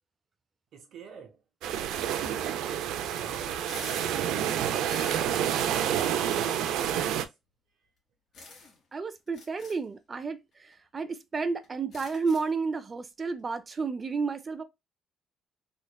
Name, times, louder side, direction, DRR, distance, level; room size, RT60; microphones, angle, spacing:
voice 1, 0.7-1.4 1.7-2.7 3.1-3.7 4.4-7.3, right 6 dB, 65° right, 1.2 m, -47 dB
sound 1, 1.6-7.3, right 10 dB, 90° right, 0.5 m, -29 dB
sound 2, 3.6-4.1 4.5-5.6 5.9-6.2 7.1-7.2 8.3-8.8 9.3-9.8 10.7-10.8 11.1-11.2 11.6-12.6, left 3 dB, 45° left, 2.0 m, -47 dB
voice 2, 8.9-14.6, right 4 dB, 25° right, 0.6 m, -31 dB
3.7 x 3.2 x 2.3 m
cardioid pair, 135°, 0 cm